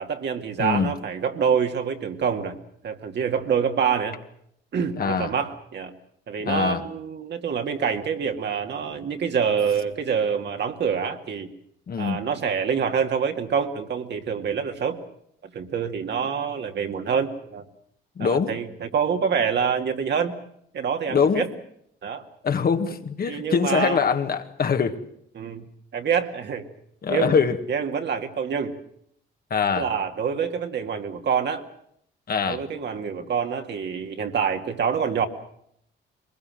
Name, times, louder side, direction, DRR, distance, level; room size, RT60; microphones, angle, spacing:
voice 1, 0.0-2.6 2.8-4.2 4.7-5.9 6.3-11.5 12.0-15.0 15.4-17.6 18.2-20.3 20.7-21.5 22.0-22.2 23.3-24.0 25.4-25.7 25.9-26.7 27.1-27.3 27.7-28.7 29.7-31.6 32.5-35.3, right 6 dB, 60° right, 2.3 m, -26 dB
voice 2, 0.6-0.9 5.0-5.3 6.5-6.8 11.9-12.3 18.2-18.6 21.1-21.4 22.4-25.0 27.0-27.6 29.5-29.9 32.3-32.6, left 6 dB, 50° left, 1.8 m, -23 dB
22.5 x 21.0 x 7.8 m
cardioid pair, 90°, 20 cm